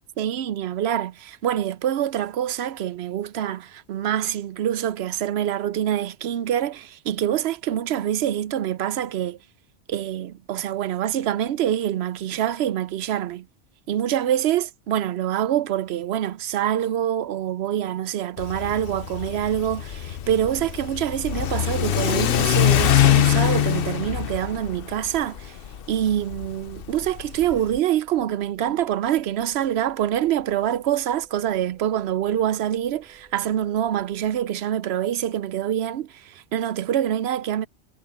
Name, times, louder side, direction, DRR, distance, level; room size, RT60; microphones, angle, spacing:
voice 1, 0.2-9.4 9.9-13.5 13.9-25.6 25.9-37.7, right 11 dB, 70° right, 0.8 m, -25 dB
Car / Accelerating revving vroom, 18.4-27.8, left 11 dB, 60° left, 0.8 m, -23 dB
sound 1, 18.8-34.5, right 2 dB, 45° right, 7.4 m, -57 dB
omnidirectional pair, 1.2 m